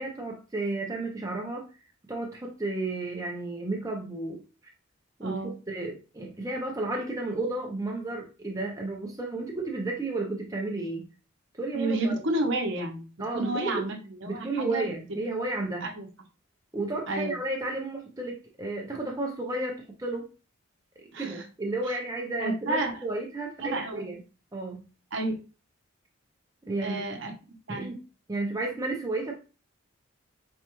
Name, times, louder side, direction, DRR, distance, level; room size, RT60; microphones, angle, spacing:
voice 1, 0.0-1.7 2.1-4.4 5.2-11.1 11.5-12.2 13.2-13.7 14.2-15.9 16.7-20.2 21.0-24.2 24.5-24.8 26.6-27.0 27.7-28.0 28.3-29.3, right 2 dB, 15° right, 1 dB, 0.6 m, -32 dB
voice 2, 5.2-5.5 11.7-13.0 13.3-14.0 14.2-14.9 15.8-16.1 17.1-17.4 21.1-21.4 22.4-22.9 23.6-24.0 25.1-25.4 26.8-27.3 27.7-27.9, right 2 dB, 55° right, 2 dB, 0.8 m, -30 dB
4.3 x 2.3 x 3.0 m, 0.33 s
head